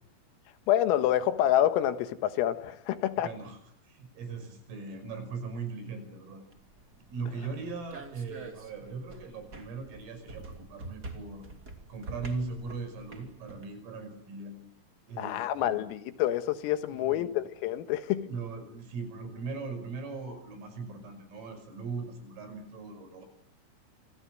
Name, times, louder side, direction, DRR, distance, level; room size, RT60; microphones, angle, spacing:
voice 1, 0.7-3.3 15.2-18.3, left 12 dB, 85° left, 4.1 m, -27 dB
voice 2, 3.2-3.6 3.8-6.4 7.1-11.5 11.9-14.6 15.1-15.9 16.9-17.4 18.3-23.3, right 4 dB, 75° right, 8.2 m, -39 dB
sound 1, 6.5-13.6, right 2 dB, 25° right, 2.2 m, -47 dB
27.0 x 27.0 x 7.7 m
omnidirectional pair, 6.0 m